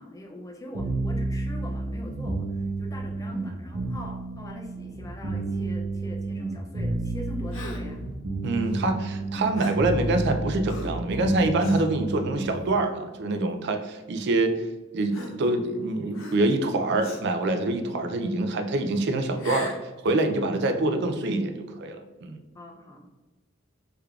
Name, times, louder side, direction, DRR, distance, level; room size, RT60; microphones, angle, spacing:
voice 1, 0.0-8.1 22.5-23.1, left 1 dB, 15° left, 2 dB, 0.4 m, -42 dB
sound 1, 0.7-12.6, right 2 dB, 90° right, 0.9 m, -31 dB
Gasp, 7.5-8.0 9.5-9.9 10.7-11.0 11.6-11.9 12.6-12.7 13.8-13.9 15.1-15.8 16.1-16.6 17.0-17.4 19.3-19.9, equal, 75° left, 0.6 m, -39 dB
voice 2, 8.4-14.6 14.9-19.8 20.0-22.4, right 2 dB, 55° right, 7 dB, 0.4 m, -25 dB
3.4 x 3.4 x 2.3 m, 1.1 s
head